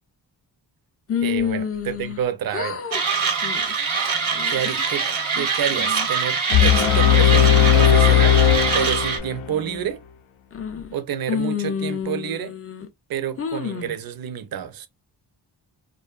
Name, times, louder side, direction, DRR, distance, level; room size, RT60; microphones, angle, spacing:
sound 1, 1.1-2.2 2.5-3.0 3.4-3.8 4.3-4.8 5.4-6.1 6.5-8.2 8.7-8.9 9.5-9.9 10.5-11.0 11.3-12.9 13.4-14.0, left 7 dB, 35° left, 0.4 m, -29 dB
voice 1, 1.2-2.8 4.5-5.1 5.4-8.4 8.7-10.0 10.9-12.5 13.1-14.9, right 9 dB, 50° right, 0.5 m, -29 dB
Mechanisms, 2.9-9.2, right 5 dB, 90° right, 0.9 m, -24 dB
sound 2, 6.5-9.5, left 10 dB, 85° left, 0.5 m, -17 dB
2.5 x 2.2 x 2.3 m
wide cardioid pair, 105°, 46 cm